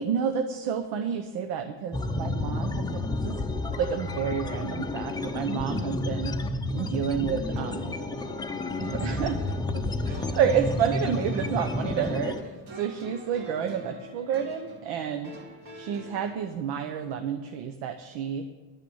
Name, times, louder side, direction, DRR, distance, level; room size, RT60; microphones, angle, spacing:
voice 1, 0.0-8.0 8.8-9.4 9.7-15.3 15.7-18.4, right 8 dB, 80° right, 6 dB, 1.0 m, -30 dB
sound 1, 1.9-12.4, left 2 dB, 10° left, 0.5 m, -31 dB
sound 2, 7.5-16.3, right 1 dB, 50° right, 2.4 m, -45 dB
11.5 x 9.2 x 7.1 m, 1.4 s
cardioid pair, 140°, 43 cm